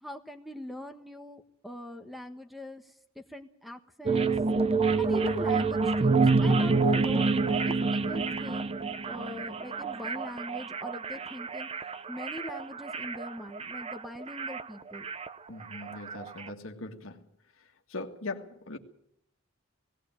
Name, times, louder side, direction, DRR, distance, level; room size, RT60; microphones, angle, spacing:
voice 1, 0.0-4.3 5.0-8.7 9.1-11.7 12.1-15.1, left 1 dB, ahead, 1.4 m, -41 dB
sound 1, 4.1-16.5, right 4 dB, 30° right, 0.8 m, -28 dB
voice 2, 15.5-17.2 17.9-18.8, left 2 dB, 75° left, 1.8 m, -40 dB
18.5 x 17.5 x 9.0 m
head